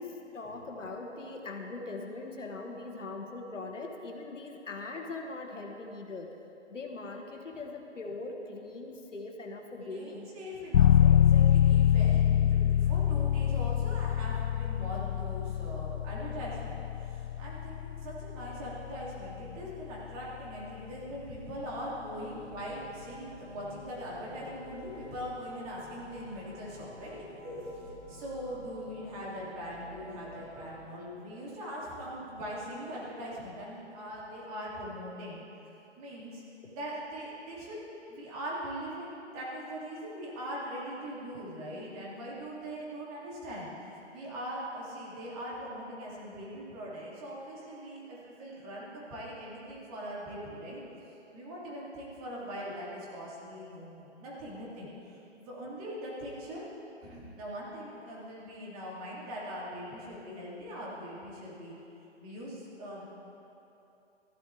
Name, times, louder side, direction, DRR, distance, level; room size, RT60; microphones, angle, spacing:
voice 1, 0.0-6.4 6.7-10.3 36.6-36.8, left 3 dB, 90° left, 2 dB, 1.6 m, -41 dB
voice 2, 9.8-35.4 36.0-36.4 36.7-37.8 38.1-50.8 51.3-56.6 57.0-61.7 62.2-63.0, equal, 30° right, -5 dB, 2.8 m, -41 dB
sound 1, 10.7-21.3, left 10 dB, 60° left, 0.5 m, -26 dB
sound 2, 22.3-30.9, left 2 dB, 30° left, 2.4 m, -50 dB
13.5 x 11.5 x 3.4 m, 2.8 s
hypercardioid pair, 145°, 36 cm